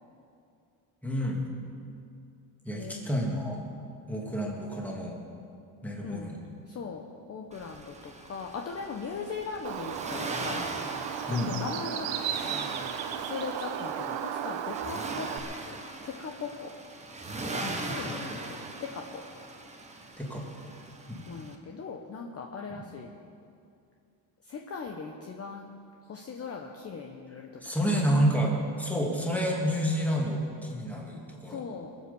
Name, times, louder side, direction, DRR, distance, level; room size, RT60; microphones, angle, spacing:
voice 1, 1.0-1.4 2.6-3.7 4.1-5.2 5.8-6.4 11.3-11.5 17.8-18.4 20.2-20.4 21.1-21.2 22.7-22.8 27.6-31.6, equal, 5° left, -2 dB, 2.5 m, -29 dB
voice 2, 2.7-3.2 6.0-6.3 6.7-7.0 7.3-10.7 11.3-12.1 13.1-15.3 15.6-15.8 16.0-16.7 17.4-19.2 21.2-23.1 24.4-25.7 26.1-27.6 31.5-31.9, left 5 dB, 30° left, 2 dB, 1.0 m, -39 dB
Accelerating revving vroom, 7.5-21.5, right 2 dB, 15° right, 1.2 m, -40 dB
Bird, 9.6-15.4, right 9 dB, 75° right, 1.2 m, -35 dB
22.0 x 7.9 x 7.0 m, 2.5 s
cardioid pair, 140°, 46 cm